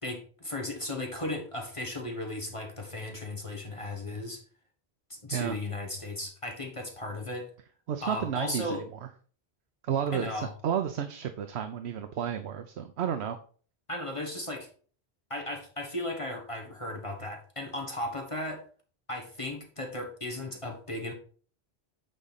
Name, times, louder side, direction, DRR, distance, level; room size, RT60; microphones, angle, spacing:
voice 1, 0.0-4.4 5.1-7.5 8.0-8.8 10.1-10.5 13.9-14.7 15.3-18.6 19.1-21.1, left 1 dB, 30° left, 3 dB, 1.4 m, -36 dB
voice 2, 7.9-8.8 9.8-13.4, right 8 dB, 85° right, 8 dB, 1.0 m, -32 dB
8.9 x 5.0 x 4.1 m, 0.42 s
omnidirectional pair, 1.1 m